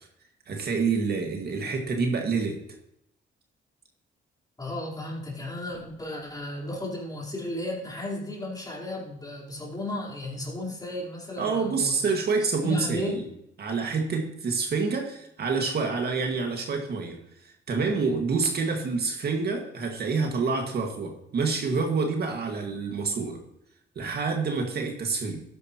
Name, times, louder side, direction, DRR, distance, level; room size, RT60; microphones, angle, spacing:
voice 1, 0.5-2.6 11.4-13.3 13.6-23.4 24.0-25.4, right 4 dB, 55° right, 2 dB, 2.1 m, -27 dB
voice 2, 4.6-12.0 12.6-13.2, left 1 dB, 20° left, -3 dB, 4.2 m, -34 dB
12.5 x 10.0 x 3.1 m, 0.77 s
cardioid pair, 90°, 20 cm